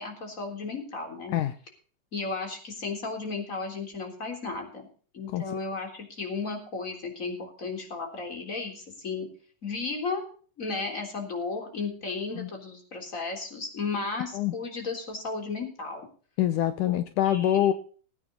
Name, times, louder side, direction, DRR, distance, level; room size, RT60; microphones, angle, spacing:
voice 1, 0.0-1.4 2.1-4.9 5.1-9.3 9.6-10.2 10.6-16.1 16.9-17.0 17.2-17.7, left 4 dB, 25° left, 3 dB, 3.7 m, -34 dB
voice 2, 16.4-17.7, left 11 dB, 75° left, 10 dB, 2.3 m, -25 dB
20.5 x 9.3 x 4.0 m, 0.42 s
omnidirectional pair, 3.8 m